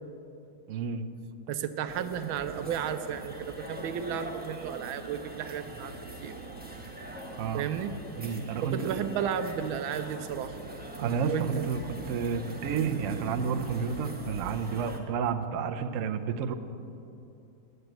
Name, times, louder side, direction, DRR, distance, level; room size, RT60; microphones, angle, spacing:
voice 1, 0.7-1.0 7.4-7.7 8.2-9.0 11.0-16.5, right 6 dB, 70° right, 6 dB, 0.7 m, -31 dB
voice 2, 1.5-5.9 6.2-6.3 7.5-7.9 8.6-10.5 11.3-11.6, right 9 dB, 85° right, 10 dB, 1.5 m, -33 dB
sound 1, 1.9-15.0, right 2 dB, 10° right, 0.6 m, -41 dB
9.6 x 7.9 x 9.1 m, 2.7 s
omnidirectional pair, 2.1 m